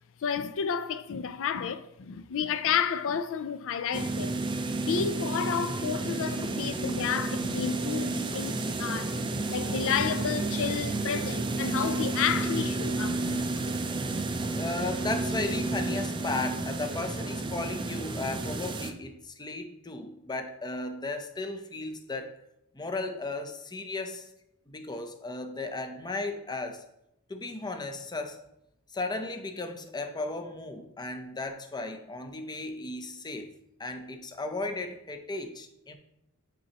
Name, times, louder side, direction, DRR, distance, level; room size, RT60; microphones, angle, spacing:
voice 1, 0.2-4.3 4.8-9.2 9.5-13.6, left 7 dB, 65° left, 0.4 m, -31 dB
sound 1, 3.9-18.9, right 2 dB, 20° right, 0.4 m, -31 dB
voice 2, 14.5-22.4 22.7-24.3 24.7-26.9 27.3-28.4 28.9-33.5 33.8-35.9, left 2 dB, 20° left, 0.6 m, -35 dB
9.3 x 4.2 x 2.9 m
head